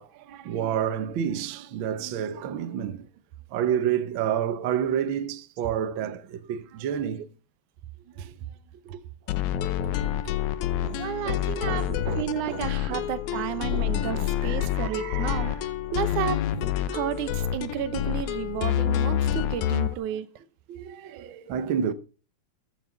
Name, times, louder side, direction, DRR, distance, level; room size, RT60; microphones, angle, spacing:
voice 1, 0.0-3.1 3.5-7.3 8.1-8.4 8.8-9.0 9.6-10.2 10.8-13.4 13.7-15.7 16.5-16.7 19.7-20.0 20.7-21.9, right 9 dB, 65° right, 1.3 m, -31 dB
sound 1, 9.3-19.9, left 11 dB, 75° left, 2.2 m, -27 dB
voice 2, 11.0-15.6 15.9-16.5 16.9-20.3, right 12 dB, 80° right, 2.4 m, -32 dB
14.5 x 8.0 x 6.0 m
omnidirectional pair, 3.5 m